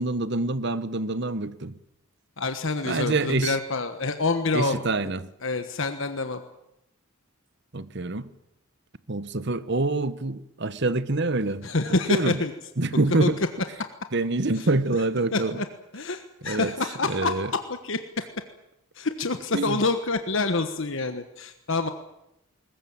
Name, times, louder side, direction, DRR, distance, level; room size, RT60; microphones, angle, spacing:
voice 1, 0.0-1.7 2.8-3.5 4.5-5.2 7.7-8.3 9.1-11.7 12.1-12.4 12.8-13.4 14.1-15.5 16.4-16.7 17.1-17.5 19.5-19.8, right 2 dB, 50° right, 14 dB, 1.1 m, -26 dB
voice 2, 2.4-4.8 5.4-6.4 11.6-12.5 13.2-13.3 13.8-13.9 14.5-14.7 15.3-15.6 15.9-18.2 18.9-21.9, left 3 dB, 60° left, 8 dB, 1.3 m, -27 dB
21.0 x 20.0 x 8.9 m, 0.84 s
head